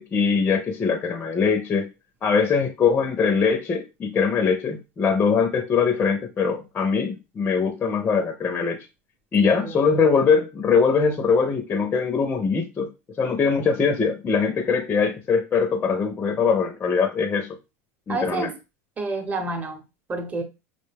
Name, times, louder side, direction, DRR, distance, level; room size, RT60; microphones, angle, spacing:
voice 1, 0.0-1.9 2.2-8.9 9.3-12.9 13.2-17.6 18.1-18.5, left 5 dB, 20° left, 0.5 m, -22 dB
voice 2, 9.4-9.8 18.1-18.6 19.0-19.8 20.1-20.4, right 3 dB, 20° right, 0.8 m, -29 dB
5.0 x 2.1 x 3.3 m
supercardioid pair, 125°, 8 cm